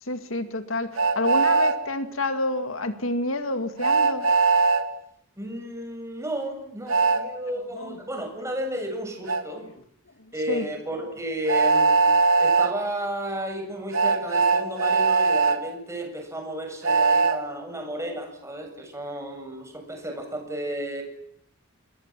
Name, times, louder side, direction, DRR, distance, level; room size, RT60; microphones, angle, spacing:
voice 1, 0.0-4.3 7.8-8.0 10.5-10.7, left 2 dB, 70° left, 8 dB, 2.2 m, -28 dB
Train, 1.0-1.8 3.8-4.8 6.9-7.2 9.3-9.4 11.5-12.7 13.9-15.6 16.8-17.4, right 4 dB, 80° right, 2.7 m, -20 dB
voice 2, 5.4-9.7 10.3-12.0 12.4-21.0, right 1 dB, 15° right, 4 dB, 7.7 m, -33 dB
29.0 x 22.0 x 7.6 m, 0.71 s
head